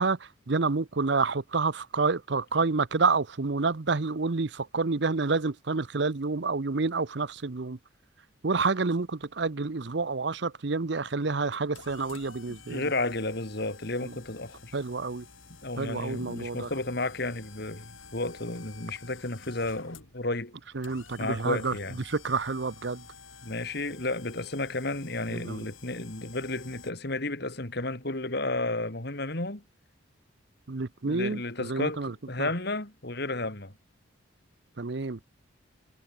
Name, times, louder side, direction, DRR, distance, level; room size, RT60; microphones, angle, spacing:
voice 1, 0.0-7.8 8.4-12.8 14.7-15.2 15.8-16.7 20.7-21.7 22.1-23.0 25.3-25.6 30.7-32.1 32.4-32.5 34.8-35.2, right 4 dB, 60° right, 0.7 m, -28 dB
sound 1, 11.0-26.9, left 5 dB, 85° left, 5.3 m, -51 dB
voice 2, 12.5-14.8 15.6-20.5 21.2-22.0 23.4-29.6 31.0-33.7, left 2 dB, 55° left, 2.6 m, -32 dB
head